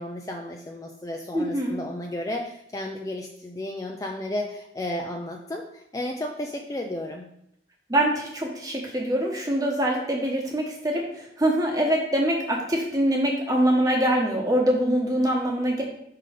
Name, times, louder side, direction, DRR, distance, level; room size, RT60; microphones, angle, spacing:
voice 1, 0.0-7.3, left 1 dB, 20° left, 1 dB, 0.4 m, -33 dB
voice 2, 1.3-1.8 7.9-15.8, right 1 dB, 20° right, -1 dB, 1.2 m, -24 dB
5.6 x 3.8 x 4.9 m, 0.76 s
head